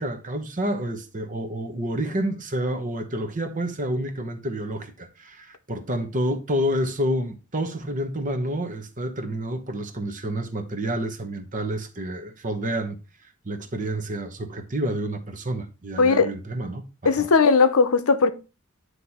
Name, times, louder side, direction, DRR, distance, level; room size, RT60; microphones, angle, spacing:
voice 1, 0.0-13.0 13.4-17.3, right 1 dB, 40° right, 1.1 m, -29 dB
voice 2, 16.0-16.3 17.0-18.3, left 4 dB, 85° left, 0.7 m, -18 dB
9.5 x 3.2 x 4.2 m
head